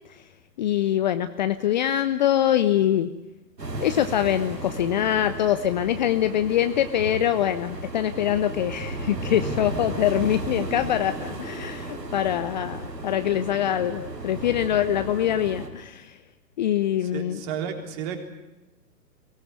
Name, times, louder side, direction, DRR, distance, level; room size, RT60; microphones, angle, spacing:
voice 1, 0.6-3.1 3.8-16.2 16.6-17.4, left 11 dB, 25° left, 11 dB, 0.8 m, -24 dB
sound 1, 3.6-15.7, right 2 dB, 80° right, 4.7 m, -34 dB
voice 2, 17.0-18.2, right 8 dB, 30° right, 5 dB, 3.7 m, -32 dB
23.5 x 18.5 x 9.5 m, 1.0 s
figure-of-eight pair, 120°, 50 cm